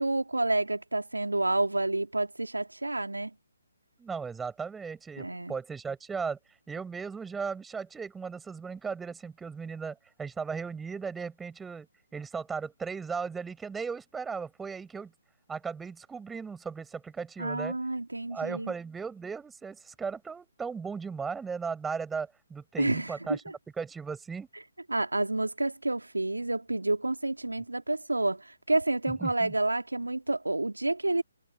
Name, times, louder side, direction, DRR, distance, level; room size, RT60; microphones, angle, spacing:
voice 1, 0.0-3.3 5.2-5.5 17.4-18.7 22.8-23.4 24.9-31.2, right 2 dB, 85° right, 2.5 m, -29 dB
voice 2, 4.0-6.4 6.7-11.9 12.1-15.1 15.5-17.8 18.3-23.4 23.8-24.5 29.1-29.5, right 5 dB, 5° right, 5.6 m, -36 dB
figure-of-eight pair, 140°, 0 cm